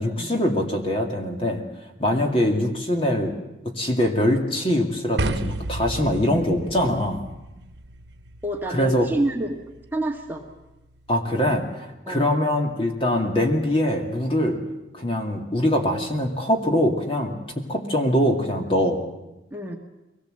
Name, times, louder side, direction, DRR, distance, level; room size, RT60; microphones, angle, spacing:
voice 1, 0.0-1.6 2.0-3.4 3.6-7.2 8.7-9.1 11.1-14.6 14.9-19.0, left 1 dB, 30° left, 2 dB, 2.3 m, -23 dB
voice 2, 2.1-2.4 8.4-9.6 9.9-10.4 12.1-12.3 19.5-19.8, right 1 dB, 10° right, 1 dB, 1.6 m, -28 dB
sound 1, 5.2-11.3, right 2 dB, 80° right, 1.0 m, -34 dB
23.0 x 18.0 x 7.8 m, 0.99 s
head